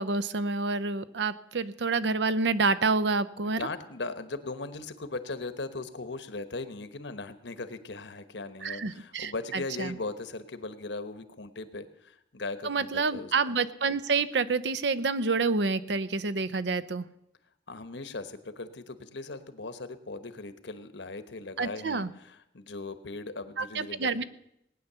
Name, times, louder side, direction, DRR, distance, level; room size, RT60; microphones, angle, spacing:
voice 1, 0.0-3.6 8.6-10.0 12.6-17.1 21.6-22.1 23.6-24.2, right 4 dB, 75° right, 14 dB, 0.7 m, -28 dB
voice 2, 3.4-13.5 17.7-24.2, left 3 dB, 90° left, 11 dB, 1.1 m, -39 dB
19.0 x 9.5 x 6.8 m, 0.80 s
head